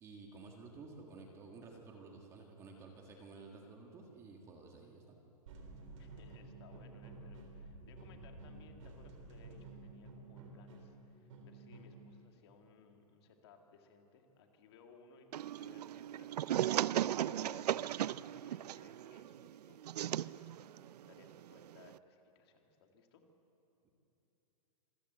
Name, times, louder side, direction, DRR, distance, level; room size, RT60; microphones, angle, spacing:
voice 1, 0.0-5.2 23.8-23.9, right 3 dB, 15° right, 1 dB, 1.6 m, -53 dB
sound 1, 5.5-12.1, right 2 dB, 55° right, 3.9 m, -52 dB
voice 2, 6.0-15.3 15.6-23.2, left 4 dB, 40° left, 4 dB, 2.2 m, -62 dB
sound 2, 15.3-22.0, right 11 dB, 85° right, 0.5 m, -37 dB
26.5 x 15.0 x 8.0 m, 2.9 s
hypercardioid pair, 170°, 20 cm